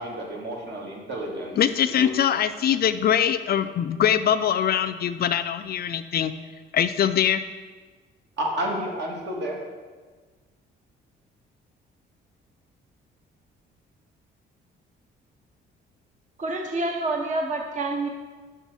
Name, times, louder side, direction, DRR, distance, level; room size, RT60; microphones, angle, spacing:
voice 1, 0.0-1.6 1.8-2.1 8.4-9.6, equal, 60° right, -1 dB, 1.8 m, -31 dB
voice 2, 1.6-6.3 6.7-7.4, left 9 dB, 50° left, 11 dB, 0.4 m, -22 dB
voice 3, 16.4-18.1, right 2 dB, 40° right, 2 dB, 0.8 m, -27 dB
5.5 x 5.5 x 6.0 m, 1.4 s
cardioid pair, 90°, 20 cm